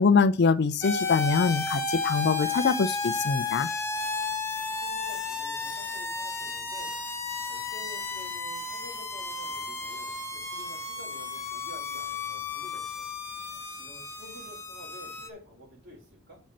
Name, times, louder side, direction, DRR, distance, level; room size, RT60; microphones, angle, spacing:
voice 1, 0.0-3.7, left 4 dB, 50° left, 0.5 m, -24 dB
sound 1, 0.8-15.3, left 4 dB, 10° left, 1.0 m, -33 dB
voice 2, 4.7-7.0 7.5-13.1 13.8-16.4, equal, 50° right, 4.5 m, -50 dB
6.3 x 5.3 x 5.8 m
head